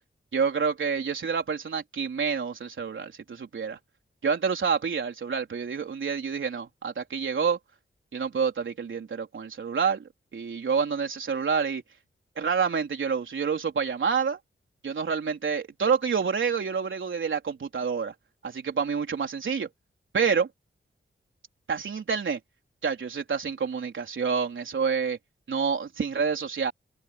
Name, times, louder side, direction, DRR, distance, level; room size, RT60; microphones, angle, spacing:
voice 1, 0.3-3.8 4.2-7.6 8.1-10.0 10.3-11.8 12.4-14.4 14.8-18.1 18.4-19.7 20.1-20.5 21.7-22.4 22.8-25.2 25.5-26.7, right 6 dB, 75° right, 4.0 m, -28 dB
open air
wide cardioid pair, 170°, 20 cm